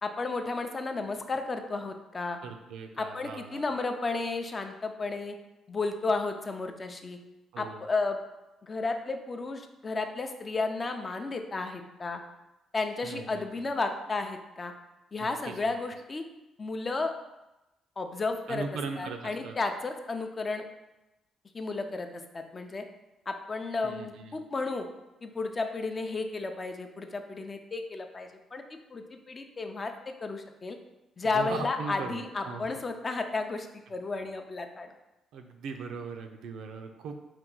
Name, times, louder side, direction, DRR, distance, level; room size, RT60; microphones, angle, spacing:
voice 1, 0.0-2.4 3.0-5.4 5.7-7.2 7.6-8.2 8.6-12.2 12.7-14.7 15.1-16.2 16.6-17.1 18.0-18.7 19.0-20.6 21.5-22.8 23.3-24.9 25.2-30.8 31.2-34.9, left 3 dB, 35° left, 6 dB, 0.4 m, -33 dB
voice 2, 2.4-3.7 7.5-7.8 13.0-13.7 15.2-15.7 18.5-19.6 23.8-24.4 31.2-32.7 35.3-37.1, right 5 dB, 85° right, 5 dB, 0.4 m, -39 dB
4.5 x 2.3 x 3.8 m, 0.99 s
cardioid pair, 90°, 0 cm